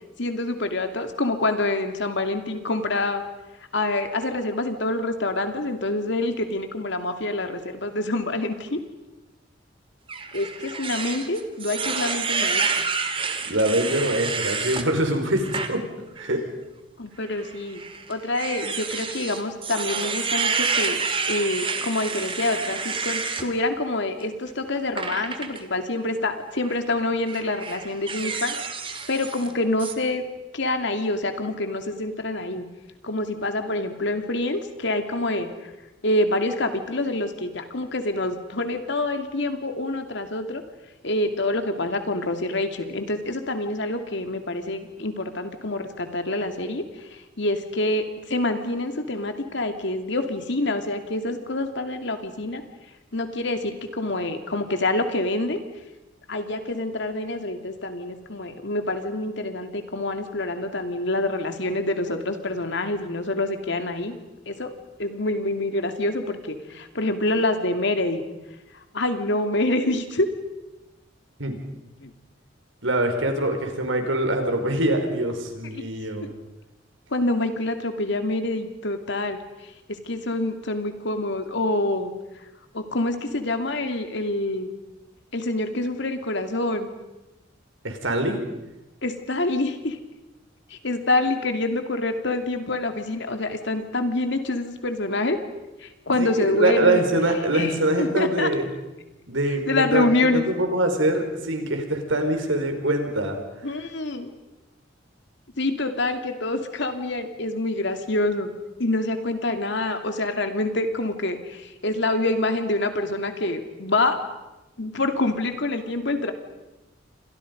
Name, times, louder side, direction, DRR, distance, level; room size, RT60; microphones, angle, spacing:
voice 1, 0.2-3.2 3.7-8.8 10.3-12.8 17.0-17.8 18.1-21.0 21.3-28.5 29.1-30.2 30.5-32.6 33.0-35.5 36.0-40.6 41.0-52.6 53.1-55.6 56.3-64.2 64.5-64.7 65.0-68.2 68.9-70.3 72.0-72.1 75.7-75.8 76.2-76.3 77.1-79.4 79.9-82.1 82.7-84.7 85.3-86.9 89.0-90.0 90.7-95.4 95.8-97.0 97.5-98.5 99.6-100.4 103.6-104.3 105.6-108.5 108.8-114.2 114.8-116.3, left 2 dB, 65° left, 7 dB, 2.6 m, -26 dB
sound 1, 10.1-14.9 15.4-15.7 16.2-16.3 17.3-23.5 25.0-25.6 26.6-26.8 27.3-29.5 29.8-29.9, right 5 dB, 30° right, 2.1 m, -29 dB
voice 2, 13.4-15.8 16.1-16.4 71.4-71.6 72.8-76.3 87.8-88.4 96.1-98.7 99.3-103.4, right 1 dB, 80° right, 5 dB, 4.6 m, -24 dB
29.5 x 26.0 x 5.3 m, 1.0 s
head